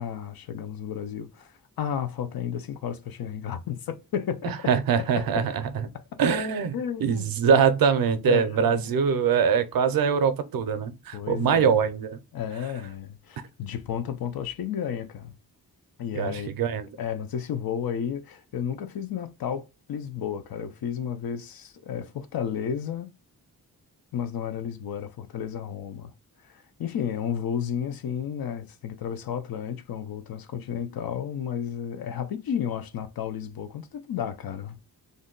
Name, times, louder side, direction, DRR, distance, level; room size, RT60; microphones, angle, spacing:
voice 1, 0.0-4.5 5.0-5.5 6.7-7.3 8.3-8.9 11.1-11.8 12.3-15.4 16.0-16.5 17.0-23.1 24.1-26.1 26.4-34.8, left 8 dB, 70° left, 0.6 m, -32 dB
voice 2, 4.4-5.7 6.2-12.2 16.1-16.9, right 6 dB, 70° right, 0.5 m, -23 dB
2.6 x 2.2 x 3.7 m
wide cardioid pair, 115°, 37 cm